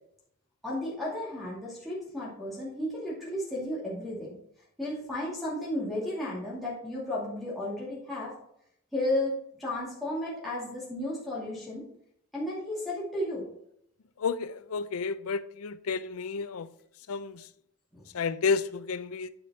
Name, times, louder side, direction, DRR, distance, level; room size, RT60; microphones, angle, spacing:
voice 1, 0.6-4.4 4.8-8.3 8.9-11.8 12.3-13.5 17.9-18.0, left 1 dB, ahead, 2.3 m, -33 dB
voice 2, 14.2-16.7 17.1-17.5 18.1-19.3, left 5 dB, 80° left, 0.5 m, -31 dB
9.9 x 5.1 x 4.1 m
head